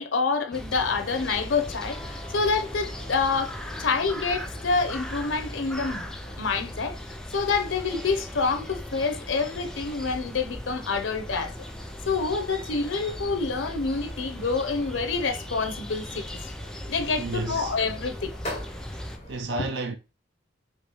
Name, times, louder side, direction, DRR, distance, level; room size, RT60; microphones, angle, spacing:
voice 1, 0.0-6.1 6.4-7.0 7.3-11.5 12.1-16.2 16.9-18.3 19.6-19.7, left 4 dB, 85° left, 0.7 m, -27 dB
sound 1, 0.5-19.2, left 1 dB, 5° left, 0.3 m, -39 dB
sound 2, 1.0-19.4, left 1 dB, 35° left, 1.8 m, -44 dB
voice 2, 17.2-17.7 19.3-20.0, right 2 dB, 65° right, 0.6 m, -31 dB
5.1 x 3.0 x 3.0 m
head